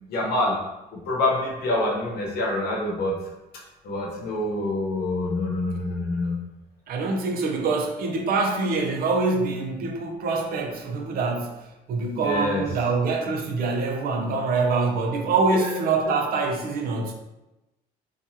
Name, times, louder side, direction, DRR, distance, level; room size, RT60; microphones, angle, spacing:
voice 1, 0.1-0.7 1.1-3.2 3.8-6.4 12.1-12.7, left 2 dB, 70° left, -2 dB, 0.9 m, -26 dB
voice 2, 6.9-11.6 11.9-17.1, right 3 dB, 60° right, 2 dB, 0.5 m, -25 dB
2.9 x 2.3 x 2.7 m, 0.98 s
cardioid pair, 110°, 17 cm